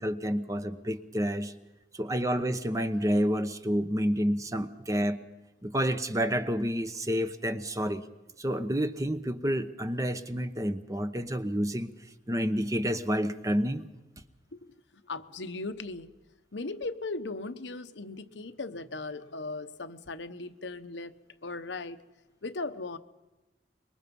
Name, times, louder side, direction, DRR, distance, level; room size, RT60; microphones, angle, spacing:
voice 1, 0.0-1.5 1.9-5.2 5.6-8.0 8.4-11.9 12.3-13.8, equal, 20° right, 10 dB, 0.9 m, -29 dB
voice 2, 15.1-16.1 16.5-21.1 21.4-22.0 22.4-23.0, left 3 dB, 75° left, 9 dB, 1.1 m, -38 dB
25.5 x 22.5 x 5.4 m, 1.1 s
head